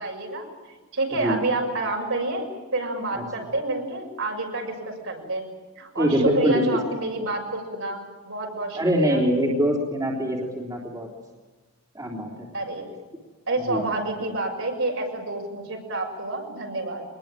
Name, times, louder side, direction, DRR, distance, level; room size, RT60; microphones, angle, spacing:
voice 1, 0.0-2.4 2.7-5.5 5.8-8.0 8.2-9.2 12.5-12.9 13.5-17.0, right 2 dB, 65° right, 1 dB, 6.5 m, -29 dB
voice 2, 6.0-6.6 8.8-11.1 12.0-12.3 13.7-13.8, equal, 15° right, -2 dB, 3.6 m, -23 dB
24.5 x 21.0 x 9.1 m, 1.3 s
head